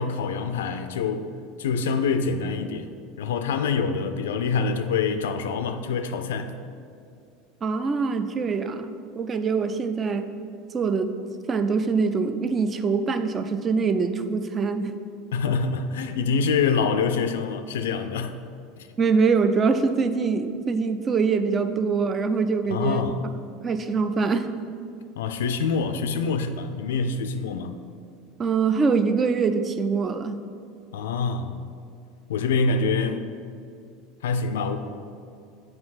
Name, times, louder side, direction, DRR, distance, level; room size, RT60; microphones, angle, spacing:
voice 1, 0.0-1.3 1.6-2.9 3.2-6.5 15.3-18.4 18.8-18.9 22.7-23.2 25.2-27.7 30.9-31.5 32.3-33.3 34.2-34.8, left 5 dB, 70° left, 0.4 m, -25 dB
voice 2, 7.6-10.3 10.7-11.1 11.5-15.0 19.0-23.0 23.6-24.5 28.4-30.4, right 5 dB, 30° right, 0.5 m, -24 dB
7.7 x 4.5 x 4.1 m
figure-of-eight pair, 75°, 0 cm